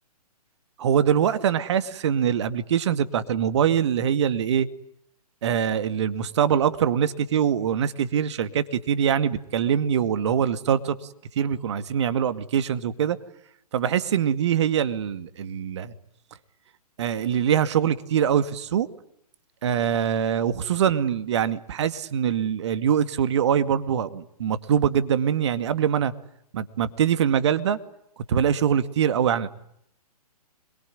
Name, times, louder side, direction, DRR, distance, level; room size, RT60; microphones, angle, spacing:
voice 1, 0.8-4.7 5.4-11.0 11.4-13.2 13.7-15.9 17.0-18.9 19.6-26.1 26.5-27.8 28.3-29.5, right 8 dB, 45° right, 13 dB, 2.2 m, -23 dB
27.0 x 23.0 x 9.2 m, 0.72 s
figure-of-eight pair, 125°, 20 cm